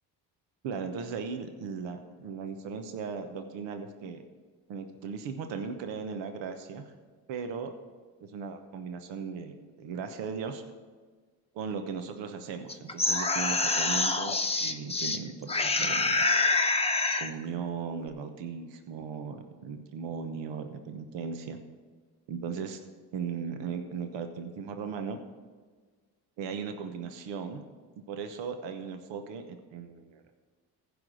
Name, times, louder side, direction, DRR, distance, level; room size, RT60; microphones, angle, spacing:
voice 1, 0.6-4.2 4.7-6.9 7.3-7.7 8.2-10.6 11.5-16.2 17.2-21.6 22.3-22.8 23.1-25.2 26.4-27.6 28.1-30.2, right 6 dB, 75° right, 7 dB, 1.0 m, -37 dB
sound 1, 12.7-15.2 15.5-17.3, left 3 dB, 15° left, 0.8 m, -26 dB
15.0 x 5.2 x 6.3 m, 1.5 s
supercardioid pair, 65°, 44 cm